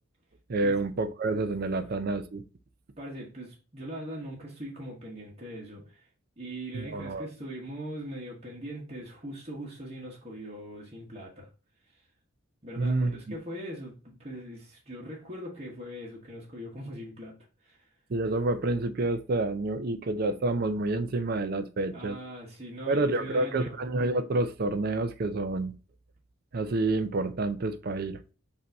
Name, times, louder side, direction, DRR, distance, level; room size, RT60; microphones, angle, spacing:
voice 1, 0.5-2.4 6.7-7.3 12.8-13.4 18.1-22.2 22.9-25.8 26.5-28.2, right 2 dB, 45° right, 0.5 m, -28 dB
voice 2, 3.0-6.1 6.4-11.5 11.9-12.0 12.6-17.9 21.9-23.8, equal, 30° right, 1.1 m, -41 dB
5.2 x 2.8 x 3.4 m
head